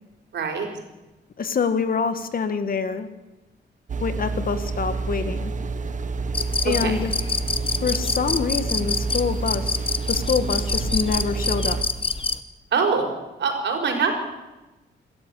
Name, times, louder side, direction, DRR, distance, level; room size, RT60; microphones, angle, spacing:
voice 1, 0.3-0.7 6.8-7.0 12.7-13.1 13.4-14.1, right 5 dB, 65° right, 3 dB, 4.9 m, -23 dB
voice 2, 1.4-3.1 4.0-5.5 6.6-7.1 7.8-9.8 10.1-11.8, left 5 dB, 50° left, 10 dB, 1.7 m, -26 dB
sound 1, 3.9-11.8, right 3 dB, 40° right, 1.4 m, -28 dB
sound 2, 6.3-12.4, left 4 dB, 30° left, 1.1 m, -27 dB
26.5 x 13.5 x 8.4 m, 1.1 s
wide cardioid pair, 135°, 19 cm